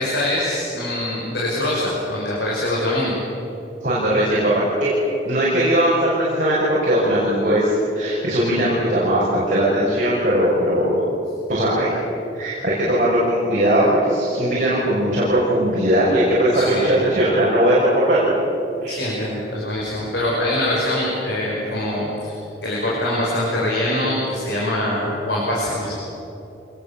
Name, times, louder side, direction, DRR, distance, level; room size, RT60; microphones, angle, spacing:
voice 1, 0.0-3.2 16.5-17.0 18.9-22.3 22.6-25.9, left 1 dB, 75° left, -5 dB, 6.0 m, -23 dB
voice 2, 3.8-4.5 4.8-4.9 5.2-11.0 11.5-11.9 12.3-18.3 18.8-19.1, right 1 dB, 45° right, -7 dB, 6.2 m, -19 dB
26.0 x 21.0 x 7.4 m, 3.0 s
head